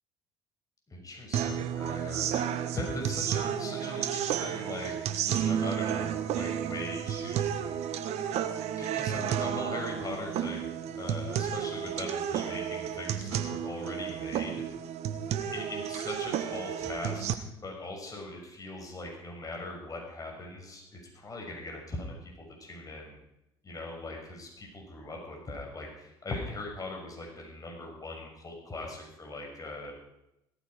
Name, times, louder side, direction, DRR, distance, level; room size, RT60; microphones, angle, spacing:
voice 1, 0.9-7.7 8.8-14.6 15.5-22.3 22.6-23.2 23.6-29.9, left 2 dB, 30° left, 0 dB, 6.5 m, -40 dB
sound 1, 1.3-17.3, right 9 dB, 60° right, 1.3 m, -32 dB
17.0 x 14.0 x 5.1 m, 0.85 s
hypercardioid pair, 60°, 13 cm